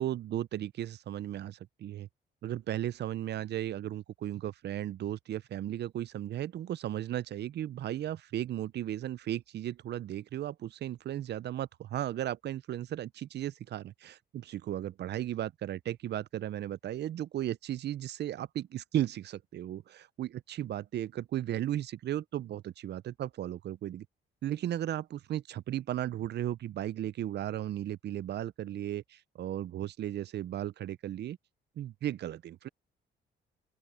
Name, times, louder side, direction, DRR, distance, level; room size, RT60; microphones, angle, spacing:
voice 1, 0.0-2.1 2.4-24.1 24.4-31.4 31.8-32.7, right 12 dB, 60° right, 0.5 m, -35 dB
open air
cardioid pair, 90°, 20 cm